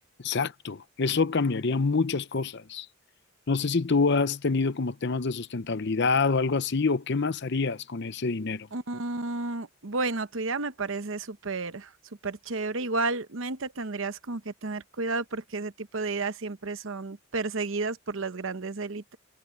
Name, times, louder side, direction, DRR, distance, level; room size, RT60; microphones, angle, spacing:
voice 1, 0.2-2.9 3.5-8.7, left 4 dB, 55° left, 0.7 m, -26 dB
voice 2, 8.7-11.9 12.2-19.2, right 3 dB, 65° right, 0.9 m, -32 dB
head